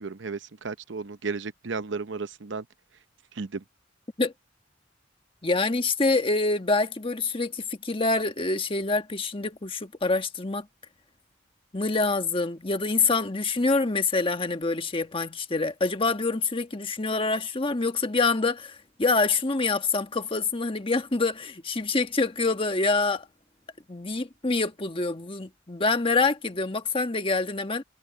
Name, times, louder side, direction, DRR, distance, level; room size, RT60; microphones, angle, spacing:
voice 1, 0.0-2.6 3.3-3.6, right 4 dB, 65° right, 0.7 m, -34 dB
voice 2, 5.4-10.7 11.7-23.3 23.9-27.8, left 3 dB, 30° left, 1.4 m, -26 dB
head